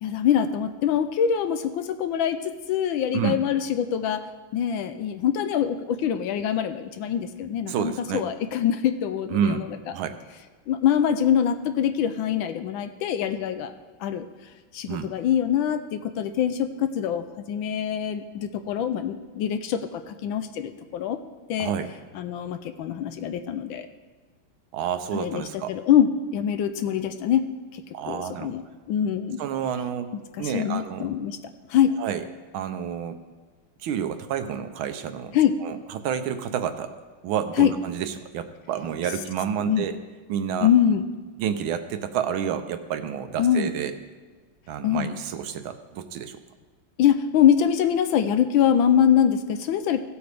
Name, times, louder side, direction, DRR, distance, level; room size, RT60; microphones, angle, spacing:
voice 1, 0.0-4.2 4.5-9.7 10.7-13.7 14.0-14.3 14.7-21.2 21.5-21.7 22.1-23.9 25.1-27.4 27.7-28.6 28.9-29.4 30.4-31.4 31.7-32.0 35.3-35.6 37.6-37.7 39.6-39.9 40.6-41.0 43.4-43.7 44.8-45.1 47.0-50.0, left 9 dB, 75° left, 10 dB, 1.3 m, -24 dB
voice 2, 7.7-8.2 9.3-9.6 9.9-10.1 14.9-15.1 21.6-21.9 24.7-25.7 27.9-28.5 29.4-30.1 30.4-31.1 32.0-32.2 32.5-33.2 33.8-36.9 37.2-40.0 40.3-40.7 41.4-43.9 44.7-46.4, right 8 dB, 80° right, 9 dB, 1.5 m, -29 dB
16.5 x 8.0 x 3.4 m, 1.4 s
omnidirectional pair, 2.3 m